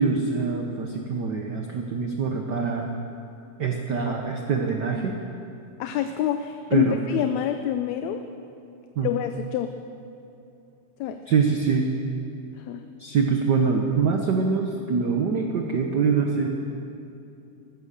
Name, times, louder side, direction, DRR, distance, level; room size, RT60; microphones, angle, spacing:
voice 1, 0.0-2.9 3.6-5.2 6.7-7.0 9.0-9.1 11.3-11.9 13.0-16.5, right 5 dB, 75° right, 2 dB, 0.9 m, -24 dB
voice 2, 5.8-8.2 9.0-9.7 11.0-11.2 12.6-12.8, left 10 dB, 80° left, 7 dB, 1.9 m, -27 dB
14.5 x 14.5 x 6.6 m, 2.7 s
omnidirectional pair, 3.3 m